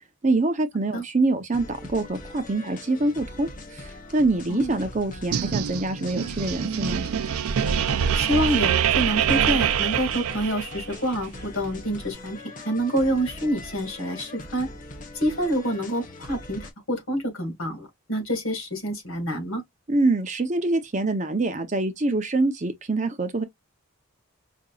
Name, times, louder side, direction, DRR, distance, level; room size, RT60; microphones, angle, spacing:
voice 1, 0.2-7.1 19.9-23.4, right 2 dB, 35° right, 0.7 m, -25 dB
sound 1, 1.5-16.7, left 2 dB, 40° left, 0.8 m, -42 dB
sound 2, 5.3-10.9, right 8 dB, 90° right, 0.4 m, -24 dB
voice 2, 8.1-14.7 15.1-19.6, equal, 75° left, 1.8 m, -27 dB
4.9 x 2.6 x 2.3 m
head